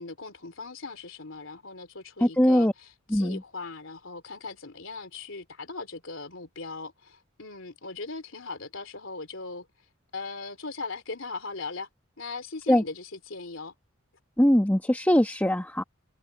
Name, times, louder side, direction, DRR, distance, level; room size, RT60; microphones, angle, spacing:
voice 1, 0.0-9.7 10.1-11.9 12.2-13.7, left 3 dB, 80° left, 3.3 m, -39 dB
voice 2, 2.2-2.7 3.1-3.4 12.7-12.8 14.4-15.8, equal, 10° left, 1.2 m, -21 dB
head